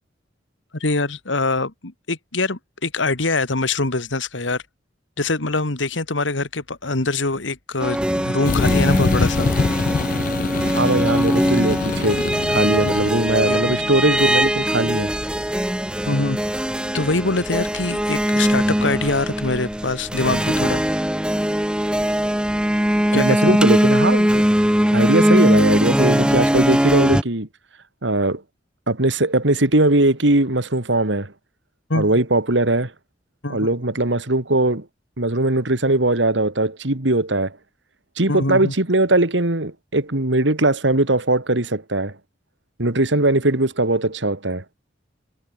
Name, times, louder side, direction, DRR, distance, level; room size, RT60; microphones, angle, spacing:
voice 1, 0.7-4.6 5.2-9.5 12.8-12.9 13.5-13.8 16.1-16.4 16.9-20.8 23.1-23.6 31.9-32.1 33.4-33.7 38.3-38.7, left 3 dB, 90° left, 2.2 m, -24 dB
sound 1, 7.8-27.2, equal, 5° right, 1.6 m, -20 dB
sound 2, 8.4-15.1, left 4 dB, 45° left, 0.4 m, -25 dB
voice 2, 10.8-12.2 12.5-15.1 23.1-24.4 24.9-27.5 28.0-28.4 28.9-31.3 31.9-32.9 33.5-34.9 35.2-37.6 38.2-42.2 42.8-44.6, right 2 dB, 75° right, 2.6 m, -20 dB
open air
head